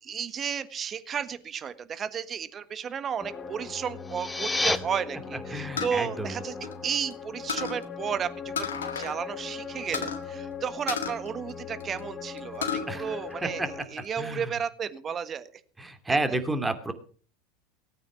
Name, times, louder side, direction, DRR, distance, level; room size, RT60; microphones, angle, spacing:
voice 1, 0.0-6.6 6.8-8.7 8.9-13.6 13.9-15.5 16.1-16.2, right 7 dB, 35° right, 13 dB, 1.4 m, -33 dB
sound 1, 3.2-13.8, left 6 dB, 25° left, 1.8 m, -40 dB
sound 2, 3.9-4.8, left 2 dB, 10° left, 1.1 m, -28 dB
voice 2, 5.5-6.4 12.9-13.7 14.2-14.5 15.8-16.9, right 2 dB, 10° right, 8 dB, 2.5 m, -30 dB
sound 3, 5.8-7.1 7.5-7.8 8.6-9.2 9.4-9.5 9.9-10.2 10.9-12.0 12.4-12.9 13.3-14.1, left 6 dB, 85° left, 1.7 m, -33 dB
18.0 x 9.0 x 6.1 m, 0.43 s
hypercardioid pair, 85°, 0 cm